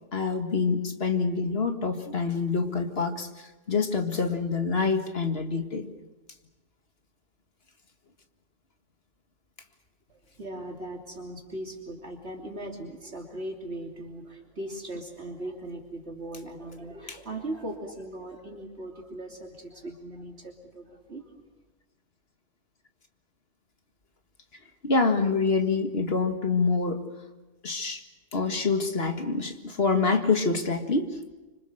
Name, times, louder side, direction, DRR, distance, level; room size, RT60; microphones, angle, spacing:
voice 1, 0.1-5.9 24.8-27.0 27.6-28.0 28.3-31.3, left 4 dB, 55° left, 5 dB, 2.1 m, -26 dB
voice 2, 10.1-21.3, right 1 dB, 60° right, 1 dB, 3.2 m, -39 dB
26.0 x 25.5 x 6.6 m, 1.1 s
omnidirectional pair, 1.3 m